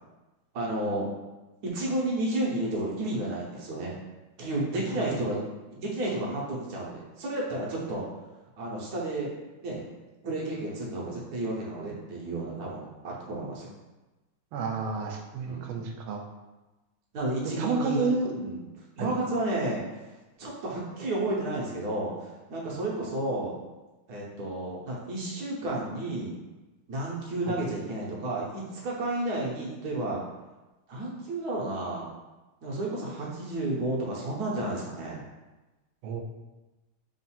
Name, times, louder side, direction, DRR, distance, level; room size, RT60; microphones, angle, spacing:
voice 1, 0.5-1.1 1.6-4.0 4.4-5.4 5.7-8.0 8.6-9.3 9.6-9.8 10.2-13.7 15.4-15.7 17.1-23.6 24.1-26.3 26.9-30.2 30.9-32.1 32.6-35.2, right 1 dB, 60° right, -4 dB, 1.1 m, -32 dB
voice 2, 14.5-16.2 17.4-18.3 19.0-19.1 36.0-36.2, right 4 dB, 80° right, 2 dB, 1.4 m, -30 dB
3.6 x 2.4 x 4.2 m, 1.1 s
omnidirectional pair, 2.3 m